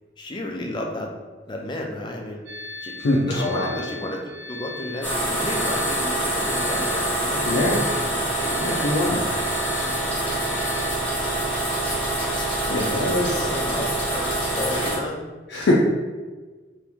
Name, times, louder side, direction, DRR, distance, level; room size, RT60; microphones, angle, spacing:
voice 1, 0.2-1.1 1.5-2.5 2.8-7.9 8.1-9.0 10.6-11.4 12.2-15.2, left 1 dB, 25° left, 1 dB, 0.4 m, -33 dB
sound 1, 2.5-11.0, left 2 dB, 75° right, 0.5 m, -38 dB
voice 2, 3.0-3.7 7.5-7.8 8.6-9.2 12.3-13.5 15.5-15.7, left 1 dB, 80° left, -3 dB, 0.4 m, -23 dB
Film Projector - Reel Runs Out, 5.0-15.0, right 1 dB, 10° left, 1.1 m, -25 dB
2.9 x 2.5 x 3.4 m, 1.3 s
head